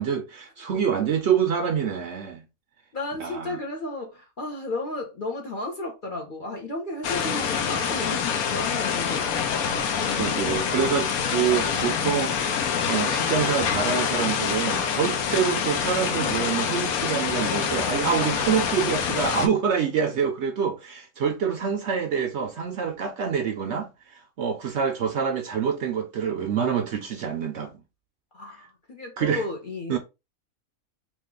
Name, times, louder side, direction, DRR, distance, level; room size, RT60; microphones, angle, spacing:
voice 1, 0.0-2.4 3.2-3.6 9.8-12.5 12.9-27.7 29.2-29.4 29.9-30.0, right 7 dB, 65° right, 0.7 m, -26 dB
voice 2, 2.9-9.3 10.0-10.7 28.3-30.0, left 2 dB, 45° left, 0.8 m, -33 dB
sound 1, 7.0-19.5, left 7 dB, 90° left, 1.1 m, -26 dB
3.1 x 2.4 x 3.6 m
omnidirectional pair, 1.5 m